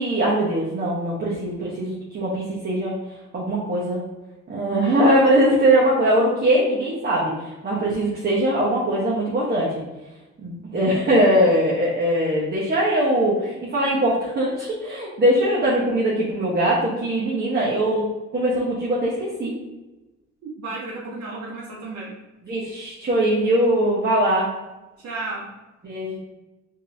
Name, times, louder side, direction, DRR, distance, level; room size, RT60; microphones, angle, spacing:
voice 1, 0.0-2.9 3.3-4.0 4.5-7.3 7.6-9.8 10.4-18.1 18.3-19.6 22.5-24.5 25.8-26.2, right 1 dB, 35° right, -6 dB, 1.1 m, -21 dB
voice 2, 20.4-22.1 25.0-25.5, right 3 dB, 60° right, -6 dB, 1.0 m, -33 dB
5.2 x 2.8 x 2.6 m, 1.1 s
cardioid pair, 90°, 30 cm